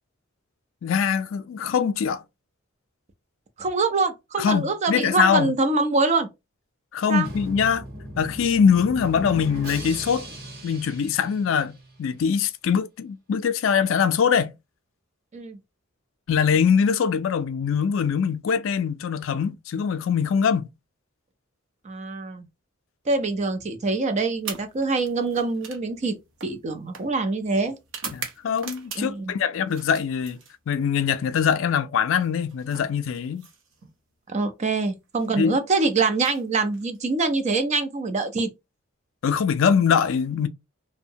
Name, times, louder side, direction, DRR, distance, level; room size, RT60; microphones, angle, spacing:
voice 1, 0.8-2.2 4.4-5.5 6.9-7.8 8.2-10.3 10.6-14.5 16.3-20.7 28.1-30.4 30.7-33.5 35.4-35.6 39.2-40.5, left 7 dB, 65° left, 0.3 m, -23 dB
voice 2, 3.6-6.3 7.1-7.3 15.3-15.6 21.8-22.5 23.1-26.2 26.4-27.7 29.0-29.4 34.3-38.5, right 3 dB, 35° right, 0.5 m, -24 dB
Drum, 7.2-12.1, equal, 50° right, 1.0 m, -38 dB
sound 1, 24.4-29.3 29.7-30.9 32.1-34.0 35.0-35.3 36.1-37.2, right 6 dB, 70° right, 0.7 m, -41 dB
2.6 x 2.1 x 2.6 m
head